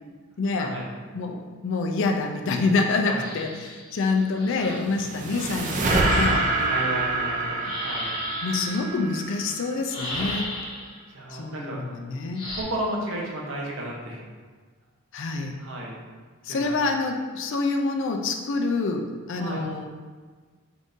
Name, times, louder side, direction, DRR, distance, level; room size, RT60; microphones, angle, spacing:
voice 1, 0.4-0.8 1.1-6.5 8.4-10.5 11.3-12.5 15.1-15.6 16.4-19.9, left 3 dB, 55° left, 3 dB, 0.4 m, -27 dB
sound 1, 3.2-4.9 7.5-8.8 9.9-11.0 12.3-12.6, left 1 dB, 25° left, 0.9 m, -35 dB
sound 2, 4.6-10.0, right 2 dB, 35° right, 0.4 m, -26 dB
voice 2, 6.2-8.1 11.1-11.8 12.5-14.2 15.6-15.9 16.5-16.8 19.3-19.7, right 1 dB, 60° right, -3 dB, 0.8 m, -33 dB
3.7 x 2.6 x 3.6 m, 1.5 s
head